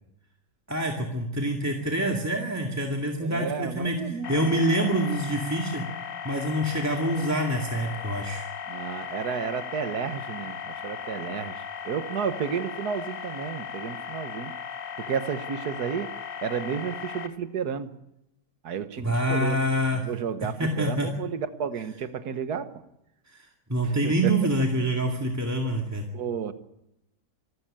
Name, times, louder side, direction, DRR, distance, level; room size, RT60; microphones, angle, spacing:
voice 1, 0.7-5.8 6.2-8.4 19.0-20.1 20.6-21.1 23.7-26.0, right 1 dB, 10° right, 1 dB, 2.1 m, -26 dB
voice 2, 3.2-4.5 8.7-11.6 11.9-14.5 15.0-16.1 16.4-17.9 18.6-19.6 19.9-22.7 23.8-24.3 26.1-26.5, right 7 dB, 65° right, 11 dB, 1.7 m, -32 dB
sound 1, 4.2-17.3, left 7 dB, 90° left, 2.1 m, -37 dB
26.0 x 13.0 x 8.9 m, 0.87 s
omnidirectional pair, 1.9 m